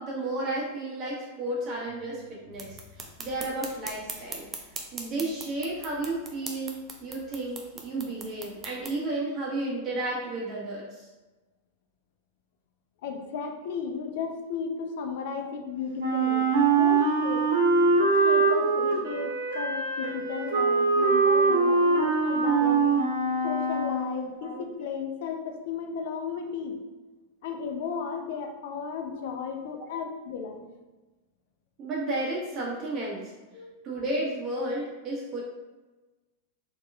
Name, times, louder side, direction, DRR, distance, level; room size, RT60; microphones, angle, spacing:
voice 1, 0.0-2.8 3.2-4.5 4.9-11.1 21.4-22.0 24.4-24.6 29.8-29.9 31.8-33.3 33.8-35.4, right 2 dB, 40° right, -5 dB, 1.4 m, -33 dB
sound 1, 2.5-9.0, right 4 dB, 25° right, 0.6 m, -41 dB
voice 2, 13.0-17.5 18.0-23.0 23.4-26.8 27.4-30.7 33.5-33.8, left 6 dB, 60° left, 5 dB, 0.5 m, -35 dB
Wind instrument woodwind instrument, 16.0-24.1, right 3 dB, 75° right, 0.7 m, -23 dB
4.5 x 2.9 x 2.4 m, 1.2 s
hypercardioid pair, 100°, 0 cm